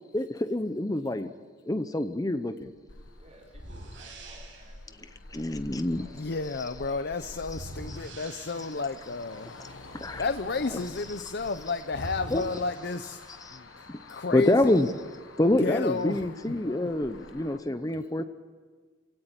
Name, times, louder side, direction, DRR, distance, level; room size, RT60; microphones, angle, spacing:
voice 1, 0.1-1.3 1.7-2.7 5.3-6.1 6.4-6.6 7.5-8.0 8.6-8.7 10.0-10.3 10.6-11.3 12.0-12.6 13.0-13.6 14.3-14.9 15.4-18.2, left 1 dB, 20° left, 9 dB, 0.8 m, -28 dB
sound 1, 2.6-2.8 3.5-4.8 7.4-9.0 11.3-11.4 11.9-13.5, right 1 dB, 80° right, 6.3 m, -44 dB
Motor vehicle (road), 2.9-17.6, left 2 dB, 85° left, 1.7 m, -49 dB
voice 2, 3.2-5.5 5.9-7.3 9.6-10.2 12.1-12.6, right 1 dB, 35° right, -2 dB, 5.3 m, -54 dB
voice 3, 6.1-9.5 10.2-13.2 13.5-14.9 15.6-16.3 16.6-16.9, left 4 dB, 60° left, 9 dB, 0.7 m, -32 dB
28.0 x 17.0 x 9.0 m, 1.5 s
head